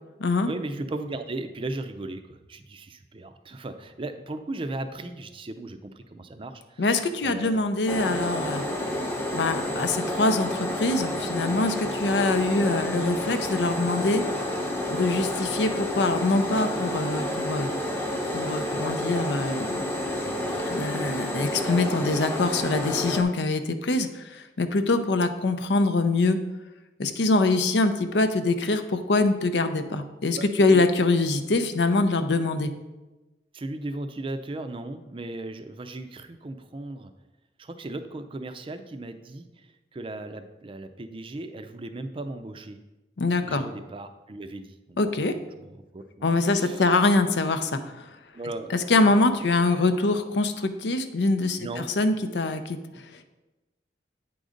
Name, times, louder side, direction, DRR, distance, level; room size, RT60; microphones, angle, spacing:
voice 1, 0.5-6.9 7.2-7.6 18.1-18.2 18.5-18.7 20.2-20.8 30.4-31.0 33.5-37.1 37.6-42.8 43.4-45.0 45.6-46.9 48.3-48.7 49.3-49.5 51.6-51.9, right 2 dB, 30° right, 9 dB, 0.5 m, -37 dB
voice 2, 6.8-8.6 9.3-14.2 14.9-17.7 18.3-19.8 20.6-26.4 27.0-32.7 43.2-43.7 45.0-45.3 46.2-48.0 48.7-52.8, left 2 dB, 75° left, 9 dB, 0.6 m, -24 dB
sound 1, 7.9-23.2, left 1 dB, 15° left, 0.8 m, -30 dB
8.4 x 3.9 x 5.0 m, 1.1 s
head